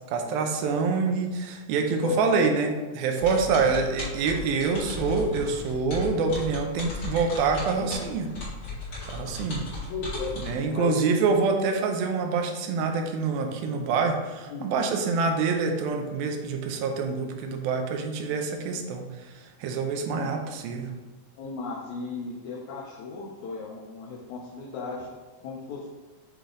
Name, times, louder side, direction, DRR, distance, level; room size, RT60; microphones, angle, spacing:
voice 1, 0.1-8.3 9.1-9.7 10.4-21.0, right 4 dB, 85° right, 4 dB, 2.5 m, -26 dB
voice 2, 2.0-2.5 9.9-10.5 10.7-11.1 14.5-14.7 20.1-20.4 21.4-25.1 25.4-25.9, left 4 dB, 75° left, -4 dB, 1.7 m, -34 dB
sound 1, 3.2-10.6, left 3 dB, 40° left, 2.6 m, -36 dB
8.1 x 3.3 x 3.7 m, 1.3 s
omnidirectional pair, 4.2 m